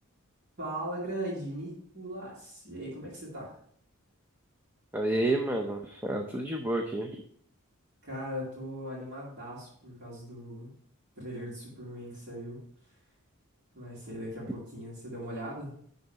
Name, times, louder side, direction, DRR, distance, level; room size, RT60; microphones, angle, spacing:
voice 1, 0.6-3.5 8.0-10.7 11.2-12.6 13.7-15.7, right 1 dB, 50° right, -7 dB, 2.5 m, -39 dB
voice 2, 4.9-7.2, right 1 dB, 10° right, 2 dB, 0.6 m, -30 dB
11.0 x 4.0 x 4.6 m, 0.63 s
head